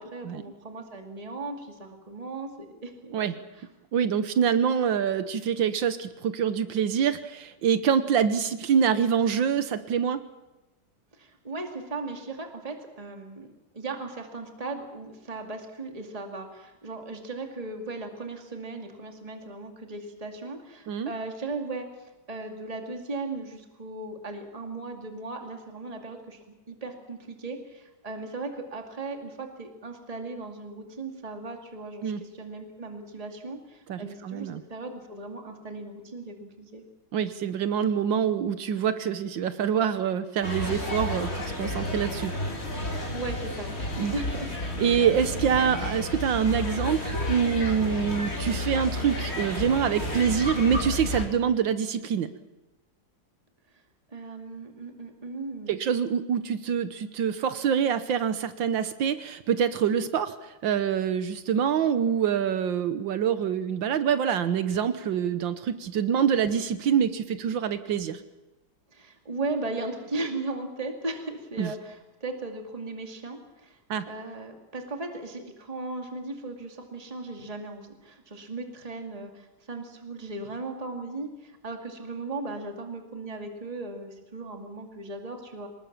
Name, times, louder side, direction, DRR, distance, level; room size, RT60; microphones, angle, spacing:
voice 1, 0.0-3.7 11.2-26.4 26.7-36.8 43.1-43.7 44.1-44.5 53.7-53.8 54.1-55.8 68.9-73.8 74.0-85.7, right 3 dB, 20° right, 4 dB, 2.4 m, -37 dB
voice 2, 3.9-10.2 20.9-21.1 32.0-32.2 33.9-34.6 37.1-42.3 44.0-44.1 44.8-52.3 55.7-68.2 71.6-71.7 73.9-74.1, right 7 dB, 80° right, 11 dB, 1.7 m, -25 dB
sound 1, 40.4-51.3, left 1 dB, 35° left, 3.7 m, -31 dB
26.0 x 19.5 x 7.3 m, 1.1 s
omnidirectional pair, 2.0 m